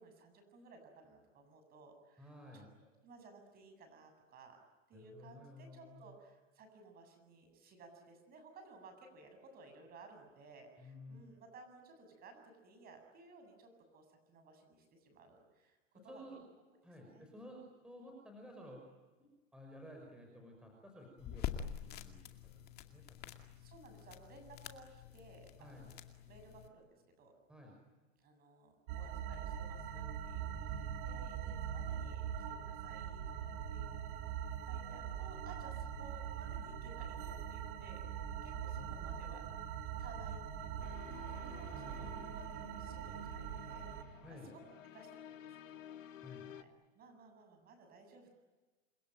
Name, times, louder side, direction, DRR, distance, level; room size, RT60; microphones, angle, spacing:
voice 1, 0.0-2.7 3.0-4.6 4.9-16.2 17.1-17.3 23.6-27.3 28.2-33.9 34.6-39.6 40.0-44.6 44.9-45.8 46.5-48.3, right 3 dB, 25° right, 6 dB, 7.7 m, -58 dB
voice 2, 2.2-2.7 4.9-6.1 10.8-11.2 16.1-16.4 16.8-18.8 19.5-23.4 25.6-25.9 27.5-27.8 30.5-31.3 38.7-40.9 41.7-42.0 44.2-44.5 46.2-46.5, left 1 dB, ahead, 0 dB, 5.6 m, -55 dB
sound 1, 21.2-26.7, left 9 dB, 25° left, 2.2 m, -46 dB
sound 2, 28.9-44.0, right 8 dB, 45° right, 3.6 m, -42 dB
sound 3, 40.8-46.6, left 10 dB, 85° left, 2.5 m, -54 dB
28.5 x 22.0 x 9.2 m, 1.2 s
hypercardioid pair, 145°, 38 cm